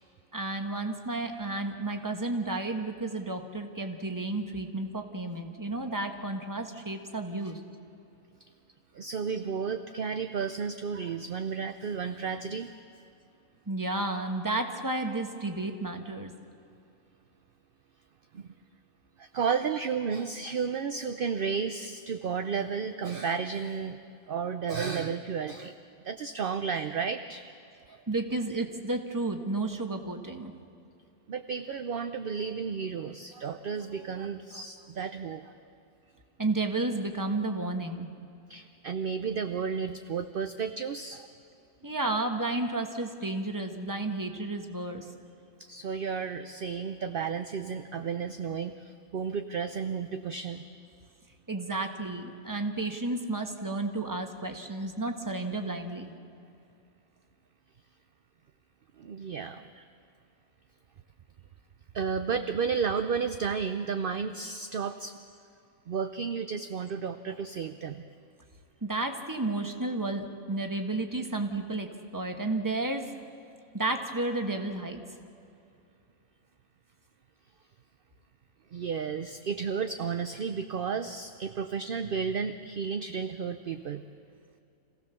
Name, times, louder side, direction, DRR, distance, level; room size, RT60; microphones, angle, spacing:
voice 1, 0.3-7.6 13.7-16.3 28.1-30.5 36.4-38.1 41.8-45.1 51.5-56.1 68.8-71.9 72.1-73.1 73.7-75.0, right 2 dB, 15° right, 5 dB, 1.4 m, -32 dB
voice 2, 8.9-12.7 18.3-18.5 19.2-24.0 24.3-25.7 26.0-27.4 27.9-28.0 31.3-35.5 38.5-41.3 45.6-50.6 59.0-59.7 61.9-65.2 65.9-68.0 78.7-84.0, right 6 dB, 50° right, 9 dB, 0.7 m, -32 dB
26.5 x 16.5 x 7.0 m, 2.6 s
omnidirectional pair, 1.5 m